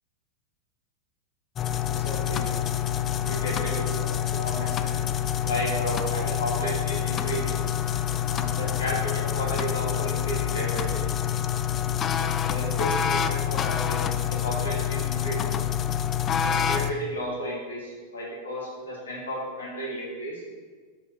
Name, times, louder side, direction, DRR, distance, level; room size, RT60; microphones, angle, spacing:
sound 1, 1.6-16.9, left 9 dB, 30° left, 0.4 m, -27 dB
voice 1, 1.8-2.5 3.2-5.0 5.4-7.6 8.2-11.0 12.1-15.6 16.4-20.4, equal, 80° left, -4 dB, 2.3 m, -33 dB
5.4 x 5.3 x 6.0 m, 1.5 s
figure-of-eight pair, 95°, 0 cm